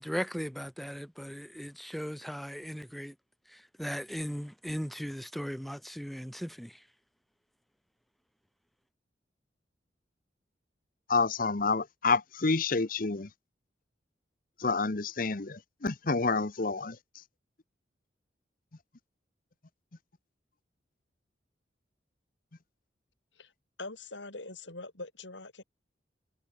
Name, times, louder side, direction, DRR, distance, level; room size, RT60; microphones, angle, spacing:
voice 1, 0.0-3.1 3.5-6.8, equal, ahead, 1.0 m, -38 dB
voice 2, 11.1-13.3 14.6-16.9, left 4 dB, 50° left, 1.0 m, -28 dB
voice 3, 23.8-25.6, left 2 dB, 90° left, 7.5 m, -43 dB
head